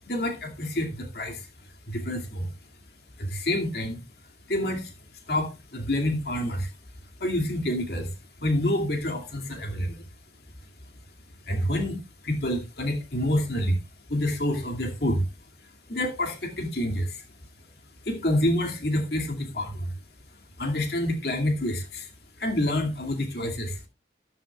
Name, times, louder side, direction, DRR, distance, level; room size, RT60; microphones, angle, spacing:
voice 1, 0.1-1.5 1.9-2.5 3.2-4.0 4.5-4.9 5.3-6.7 7.2-8.1 8.4-10.0 11.5-12.0 12.2-13.8 14.1-15.3 15.9-17.2 18.1-19.9 20.6-22.1 22.4-23.8, left 1 dB, 55° left, 2.4 m, -27 dB
13.0 x 12.0 x 2.4 m
head